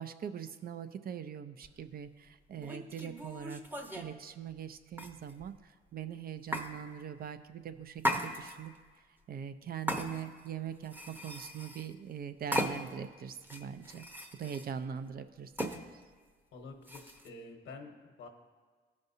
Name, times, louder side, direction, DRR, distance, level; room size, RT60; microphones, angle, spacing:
voice 1, 0.0-3.6 3.9-8.7 9.3-14.0 14.4-15.8, right 8 dB, 50° right, 11 dB, 0.5 m, -42 dB
sound 1, 1.6-1.8 2.6-4.1 4.9-5.6 6.5-6.7 8.0-8.8 9.9-10.5 10.8-11.9 12.5-13.0 13.4-14.7 15.6-15.8 16.9-17.3, equal, 10° right, 0.8 m, -37 dB
voice 2, 16.5-18.3, left 3 dB, 75° left, 3 dB, 1.1 m, -49 dB
15.0 x 5.3 x 2.7 m, 1.5 s
cardioid pair, 90°, 20 cm